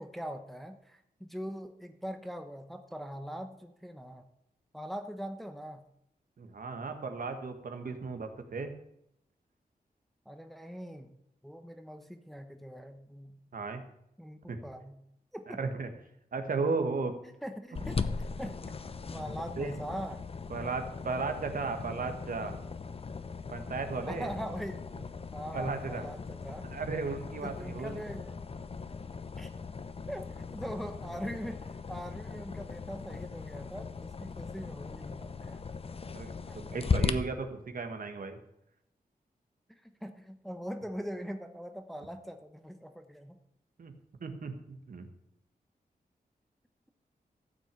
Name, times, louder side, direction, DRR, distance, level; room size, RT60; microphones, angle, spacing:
voice 1, 0.0-4.3 4.7-5.9 10.3-11.1 11.4-13.4 14.2-15.0 15.3-15.6 17.2-18.6 19.1-20.2 24.0-24.8 25.3-26.7 27.4-28.4 29.3-29.5 30.1-35.6 36.5-36.6 39.7-43.4, equal, ahead, 6 dB, 0.9 m, -42 dB
voice 2, 6.4-8.7 13.5-13.8 14.5-14.6 15.5-15.9 16.3-17.1 19.6-19.7 20.5-22.6 23.5-24.3 25.5-26.0 26.7-28.0 36.1-38.4 43.8-43.9 44.2-45.1, right 4 dB, 65° right, 6 dB, 1.7 m, -35 dB
sound 1, 17.7-37.1, left 5 dB, 40° left, 0.7 m, -38 dB
14.0 x 6.0 x 8.5 m, 0.79 s
wide cardioid pair, 135°, 16 cm